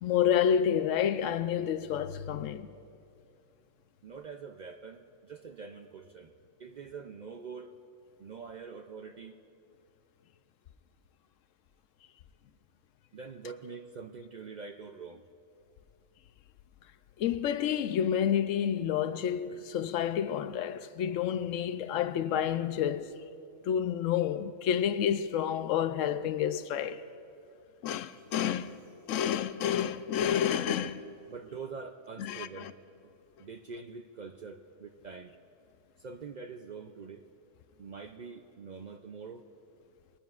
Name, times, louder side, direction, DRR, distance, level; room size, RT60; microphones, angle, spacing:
voice 1, 0.0-2.7 17.2-23.2 23.6-27.0 27.8-28.7 29.1-31.1 32.2-32.7, left 9 dB, 90° left, 1.0 m, -29 dB
voice 2, 4.0-6.3 6.6-7.7 8.2-9.4 13.1-15.2 31.3-32.7 33.0-33.1 33.4-35.3 36.0-37.3 37.8-39.5, right 5 dB, 55° right, 0.5 m, -44 dB
22.0 x 19.5 x 2.4 m
omnidirectional pair, 1.3 m